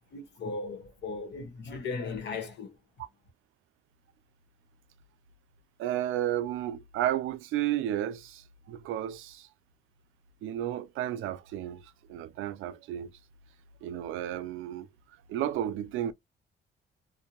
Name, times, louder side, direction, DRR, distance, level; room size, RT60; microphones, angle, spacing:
voice 1, 0.1-2.7, left 4 dB, 60° left, 1.1 m, -37 dB
voice 2, 5.8-9.5 10.4-13.1 13.8-14.9 15.3-16.1, right 12 dB, 85° right, 0.5 m, -32 dB
2.6 x 2.1 x 3.0 m
cardioid pair, 90°, 20 cm